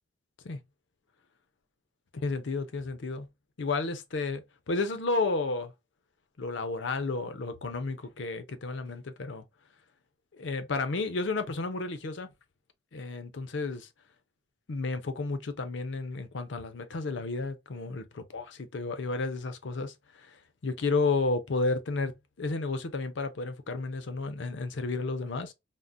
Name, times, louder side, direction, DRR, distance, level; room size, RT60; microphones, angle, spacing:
voice 1, 2.1-3.3 3.6-5.7 6.4-9.4 10.3-12.3 12.9-13.9 14.7-25.5, left 3 dB, 65° left, 0.6 m, -32 dB
3.6 x 2.1 x 2.5 m
head